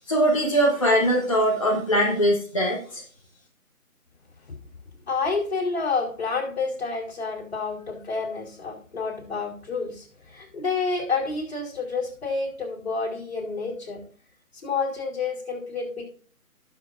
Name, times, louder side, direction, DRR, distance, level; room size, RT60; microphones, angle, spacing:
voice 1, 0.1-3.0, equal, 20° left, -3 dB, 1.2 m, -21 dB
voice 2, 5.1-14.0 14.6-16.0, left 4 dB, 45° left, -2 dB, 5.0 m, -29 dB
19.0 x 6.7 x 2.6 m, 0.42 s
figure-of-eight pair, 160°, 43 cm